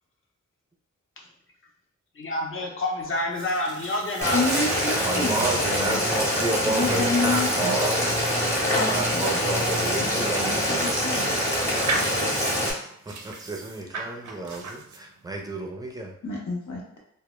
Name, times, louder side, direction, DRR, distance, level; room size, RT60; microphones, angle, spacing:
voice 1, 2.1-4.5, left 1 dB, 45° left, -1 dB, 0.6 m, -28 dB
sound 1, 3.1-15.3, right 3 dB, 80° right, 0.4 m, -37 dB
Boiling, 4.2-12.7, equal, 10° left, 0.8 m, -25 dB
voice 2, 4.3-6.0 6.7-7.8 8.7-9.4 10.0-10.6 10.8-11.3 16.2-17.0, left 3 dB, 85° left, -2 dB, 0.8 m, -29 dB
voice 3, 4.9-8.1 8.9-11.0 13.1-16.1, right 2 dB, 15° right, 1 dB, 0.4 m, -31 dB
2.0 x 2.0 x 3.0 m, 0.69 s
wide cardioid pair, 85°, 29 cm